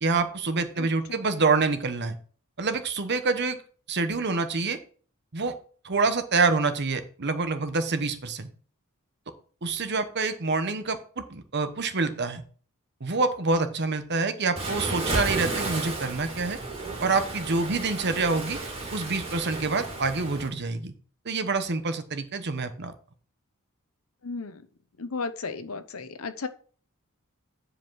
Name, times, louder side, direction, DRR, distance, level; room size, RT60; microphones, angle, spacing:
voice 1, 0.0-2.2 2.6-3.6 3.9-4.8 5.3-5.5 5.8-8.5 9.6-12.4 13.0-16.6 17.0-18.6 18.9-20.9 21.2-22.9, right 3 dB, 55° right, 9 dB, 1.0 m, -26 dB
voice 2, 0.8-1.2 15.0-15.2 24.2-24.6 25.0-26.5, left 4 dB, 75° left, 11 dB, 0.8 m, -35 dB
Waves surf, 14.6-20.5, right 2 dB, 30° right, 2.3 m, -33 dB
9.7 x 5.1 x 4.7 m, 0.42 s
head